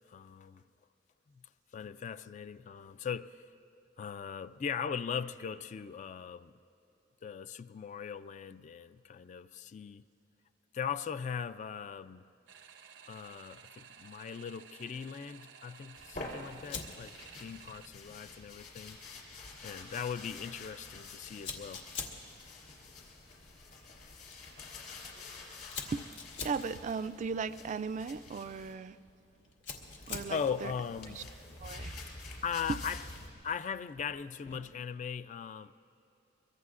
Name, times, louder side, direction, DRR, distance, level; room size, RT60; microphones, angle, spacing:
voice 1, 0.1-0.6 1.4-1.5 1.7-3.5 4.0-6.5 7.2-10.0 10.7-12.2 13.1-19.2 19.6-21.9 30.3-31.2 32.4-33.0 33.4-35.7, left 7 dB, 40° left, 0.3 m, -39 dB
sound 1, 12.5-17.9, right 7 dB, 90° right, 0.8 m, -54 dB
sound 2, 16.0-28.7 29.7-33.3, left 2 dB, 60° left, 3.4 m, -48 dB
Fire, 16.6-34.8, left 5 dB, 80° left, 1.5 m, -49 dB
voice 2, 26.4-29.0 30.1-30.7 31.2-31.3 31.6-32.0, right 5 dB, 40° right, 0.3 m, -37 dB
23.5 x 23.0 x 2.5 m
head